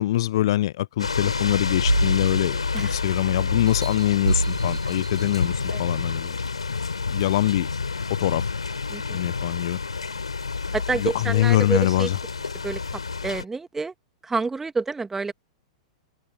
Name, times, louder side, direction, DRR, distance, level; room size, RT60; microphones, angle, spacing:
voice 1, 0.0-6.4 7.1-7.7 8.2-8.5 9.1-9.8 10.9-12.2, left 14 dB, 55° left, 0.5 m, -23 dB
sound 1, 1.0-13.4, left 4 dB, 80° left, 4.0 m, -29 dB
sound 2, 1.9-3.2 3.7-5.8 6.4-6.5, right 2 dB, 90° right, 2.9 m, -27 dB
voice 2, 10.7-12.1 12.6-12.8 13.2-13.9 14.2-15.3, right 4 dB, 10° right, 2.7 m, -28 dB
figure-of-eight pair, 100°, 3 cm